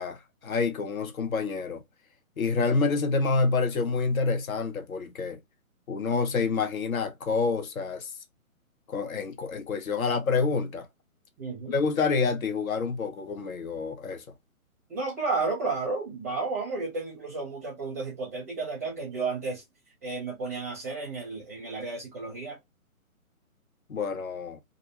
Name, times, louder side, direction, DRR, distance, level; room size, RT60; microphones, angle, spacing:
voice 1, 0.0-1.8 2.4-5.4 5.9-8.1 8.9-10.9 11.7-14.2 23.9-24.6, left 4 dB, 75° left, 0.8 m, -28 dB
voice 2, 11.4-11.7 14.9-19.6 20.0-22.6, right 3 dB, 10° right, 0.5 m, -32 dB
2.5 x 2.1 x 2.9 m
hypercardioid pair, 145°, 43 cm